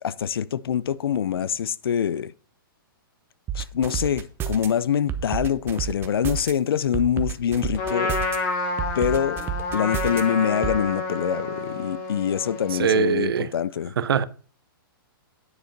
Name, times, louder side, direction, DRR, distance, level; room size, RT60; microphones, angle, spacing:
voice 1, 0.0-2.3 3.5-8.2 9.0-9.4 9.7-13.9, left 8 dB, 85° left, 0.5 m, -25 dB
sound 1, 3.5-4.7 5.1-6.5 6.9-8.4 8.8-10.2 10.6-10.8, right 9 dB, 20° right, 0.8 m, -29 dB
Trumpet, 7.8-13.0, left 3 dB, 45° left, 2.4 m, -29 dB
voice 2, 12.8-13.5 14.0-14.2, right 6 dB, 85° right, 0.7 m, -21 dB
9.7 x 5.0 x 5.2 m
hypercardioid pair, 140°, 12 cm